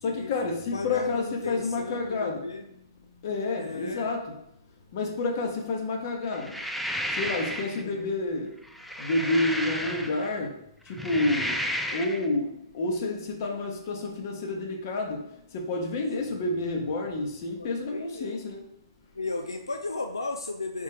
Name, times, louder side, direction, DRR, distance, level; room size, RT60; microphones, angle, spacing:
voice 1, 0.0-2.4 3.2-4.3 4.9-6.6 7.1-8.6 9.0-10.6 10.8-18.6, left 2 dB, 45° left, 2 dB, 0.9 m, -29 dB
voice 2, 0.7-2.7 3.6-4.1 7.7-8.0 16.2-16.4 17.6-18.4 19.1-20.8, left 3 dB, 85° left, 5 dB, 0.4 m, -35 dB
sound 1, 6.3-7.8 8.6-10.4 10.9-12.3, equal, ahead, 0.3 m, -32 dB
4.2 x 3.5 x 3.5 m, 0.79 s
figure-of-eight pair, 120°, 2 cm